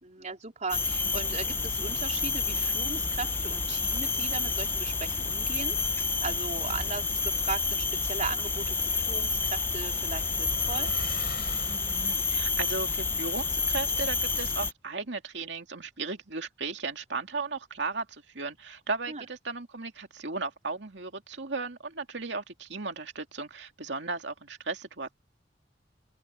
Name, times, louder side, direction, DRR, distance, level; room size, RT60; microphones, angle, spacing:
voice 1, 0.0-5.9 6.2-10.9 19.1-19.2, right 4 dB, 40° right, 4.3 m, -37 dB
sound 1, 0.7-14.7, left 4 dB, 10° left, 0.7 m, -29 dB
sound 2, 9.6-12.4, left 3 dB, 60° left, 5.1 m, -43 dB
voice 2, 11.7-25.1, right 4 dB, 70° right, 2.6 m, -36 dB
open air
head